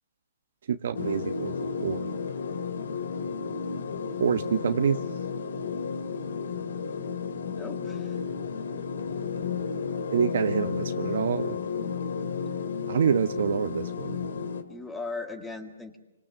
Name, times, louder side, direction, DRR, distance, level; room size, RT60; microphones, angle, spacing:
voice 1, 0.7-1.6 1.8-2.0 4.2-5.0 10.1-11.6 12.9-14.2, right 7 dB, 65° right, 8 dB, 1.1 m, -26 dB
sound 1, 0.9-14.6, left 5 dB, 75° left, 2.3 m, -32 dB
voice 2, 7.3-8.2 14.7-16.0, left 3 dB, 10° left, 7 dB, 1.7 m, -38 dB
26.5 x 24.5 x 7.6 m, 0.86 s
hypercardioid pair, 160°, 0 cm